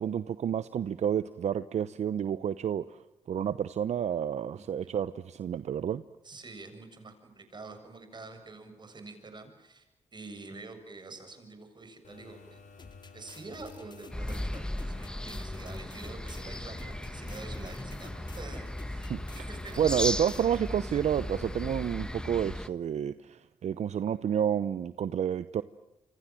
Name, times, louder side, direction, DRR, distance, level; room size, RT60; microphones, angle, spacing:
voice 1, 0.0-3.0 3.3-6.0 19.1-19.2 19.8-25.6, right 9 dB, 70° right, 14 dB, 0.9 m, -30 dB
voice 2, 4.5-5.0 6.2-12.6 13.1-19.8, right 3 dB, 40° right, 7 dB, 7.6 m, -47 dB
sound 1, 12.0-21.9, left 3 dB, 80° left, 8.0 m, -53 dB
sound 2, 12.8-20.8, left 4 dB, 40° left, 2.5 m, -51 dB
sound 3, 14.1-22.7, left 1 dB, 5° left, 1.5 m, -36 dB
28.0 x 26.0 x 7.6 m, 0.95 s
cardioid pair, 80°, 12 cm